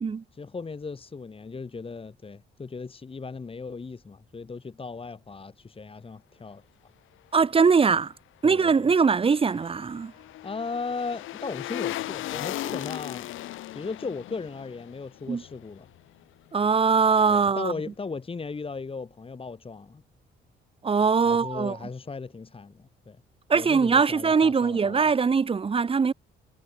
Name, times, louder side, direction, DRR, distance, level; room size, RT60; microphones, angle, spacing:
voice 1, 0.3-6.6 8.4-8.9 10.4-13.3 13.7-15.9 17.3-20.0 21.3-23.2 23.5-25.1, left 4 dB, 25° left, 1.8 m, -37 dB
voice 2, 7.3-8.1 8.4-10.1 15.3-15.4 16.5-17.7 20.8-21.8 23.5-26.1, right 5 dB, 30° right, 0.8 m, -22 dB
sound 1, 9.0-16.2 16.6-16.7, left 15 dB, 85° left, 1.9 m, -37 dB
cardioid pair, 90°, 20 cm